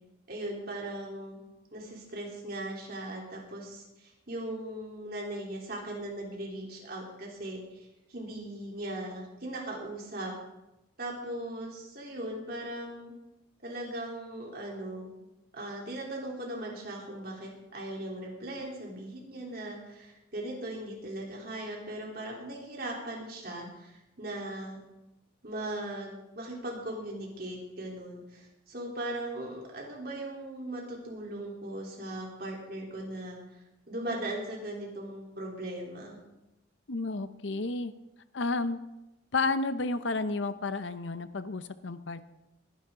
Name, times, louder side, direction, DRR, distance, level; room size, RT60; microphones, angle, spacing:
voice 1, 0.3-1.4 1.7-10.3 11.0-13.1 13.6-15.1 15.5-24.8 25.4-33.4 33.9-36.2, right 1 dB, 50° right, -2 dB, 3.7 m, -39 dB
voice 2, 36.9-37.9 38.3-38.8 39.3-42.3, left 3 dB, 70° left, 12 dB, 0.8 m, -31 dB
21.0 x 10.5 x 3.8 m, 0.96 s
head